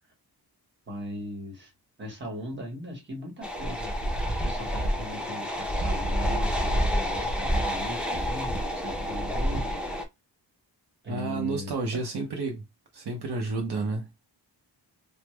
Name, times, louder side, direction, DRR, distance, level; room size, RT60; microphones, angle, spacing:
voice 1, 0.9-1.7 2.0-3.9 4.4-9.8 11.0-12.0, left 1 dB, 25° right, 1.2 m, -38 dB
sound 1, 3.4-10.0, equal, ahead, 0.6 m, -28 dB
voice 2, 11.1-12.6 12.9-14.1, right 3 dB, 65° right, 0.7 m, -30 dB
3.4 x 2.0 x 3.1 m
wide cardioid pair, 150°, 42 cm